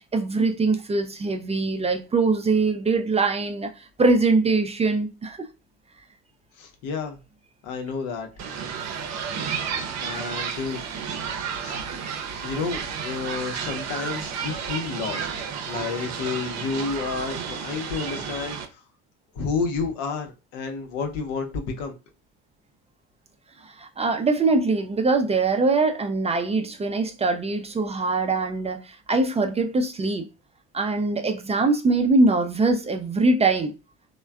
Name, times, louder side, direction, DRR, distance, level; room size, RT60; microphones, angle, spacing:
voice 1, 0.1-5.5 23.6-30.3 30.7-33.7, right 3 dB, 20° right, 0.4 m, -22 dB
voice 2, 6.6-7.2 7.6-8.3 10.0-10.8 11.5-11.8 12.4-15.3 15.7-18.6 19.3-21.9, left 5 dB, 75° left, 0.7 m, -30 dB
sound 1, 8.4-18.7, right 7 dB, 55° right, 0.7 m, -32 dB
3.2 x 2.2 x 2.3 m
hypercardioid pair, 70°, 32 cm